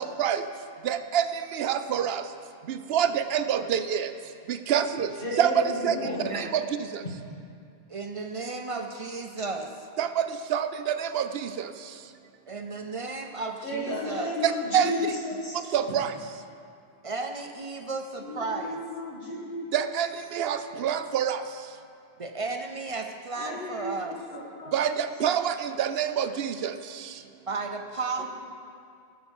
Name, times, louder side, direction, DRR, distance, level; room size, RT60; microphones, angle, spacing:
voice 1, 0.8-2.2 2.7-4.1 4.5-5.1 5.4-6.0 6.3-6.7 6.9-7.0 10.0-11.7 14.4-14.9 15.7-16.1 19.7-21.4 24.7-26.7, right 9 dB, 70° right, 10 dB, 0.8 m, -26 dB
voice 2, 5.2-6.3 13.6-15.6 15.9-16.0 18.2-19.7 23.4-25.0 28.2-28.3, left 1 dB, 55° left, -5 dB, 2.2 m, -33 dB
voice 3, 6.0-6.5 7.9-9.9 12.5-14.3 17.0-18.8 22.2-24.2 27.5-28.2, right 3 dB, 40° right, 4 dB, 0.5 m, -34 dB
12.5 x 6.4 x 5.3 m, 2.3 s
omnidirectional pair, 1.1 m